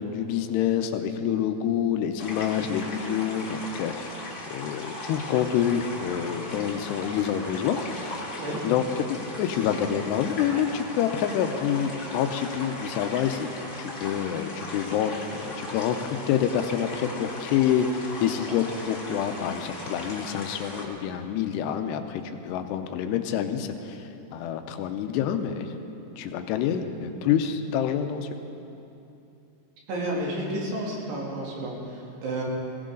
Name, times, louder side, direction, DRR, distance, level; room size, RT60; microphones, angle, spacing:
voice 1, 0.0-8.4 8.6-8.8 9.1-24.0 24.3-25.7 26.2-28.3, left 9 dB, 90° left, 7 dB, 2.9 m, -27 dB
sound 1, 2.2-20.8, left 2 dB, 40° left, 1.0 m, -38 dB
voice 2, 8.4-8.7 29.9-32.4, right 1 dB, 80° right, -4 dB, 4.9 m, -31 dB
21.5 x 16.0 x 3.9 m, 2.8 s
omnidirectional pair, 4.7 m